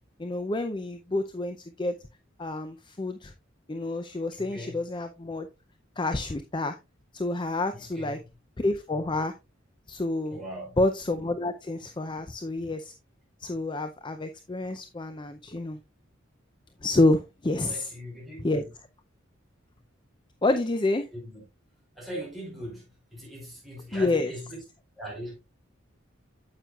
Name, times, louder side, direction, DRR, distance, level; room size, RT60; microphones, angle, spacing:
voice 1, 0.2-2.0 2.4-3.3 3.7-5.5 6.0-6.8 7.1-8.2 8.6-9.3 9.9-10.4 10.8-12.9 13.4-15.8 16.8-17.9 18.4-18.6 20.4-21.1 23.9-24.3, left 2 dB, 25° left, 0.5 m, -28 dB
voice 2, 4.4-4.8 7.7-8.2 10.3-10.8 17.7-18.7 21.1-21.4 21.9-24.6 25.0-25.4, equal, ahead, 4.8 m, -40 dB
9.2 x 7.7 x 2.4 m
head